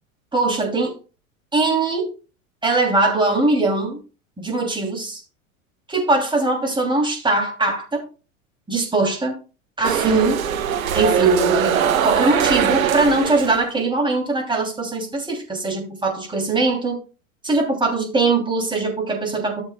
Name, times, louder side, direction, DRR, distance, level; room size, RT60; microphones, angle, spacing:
voice 1, 0.3-1.0 1.5-2.1 2.6-4.0 4.4-5.2 5.9-8.0 8.7-9.4 9.8-10.4 10.9-17.0 17.4-19.6, right 3 dB, 10° right, 2.9 m, -21 dB
sound 1, 9.8-13.6, right 8 dB, 75° right, 1.2 m, -21 dB
14.0 x 7.4 x 2.2 m
figure-of-eight pair, 90°, 41 cm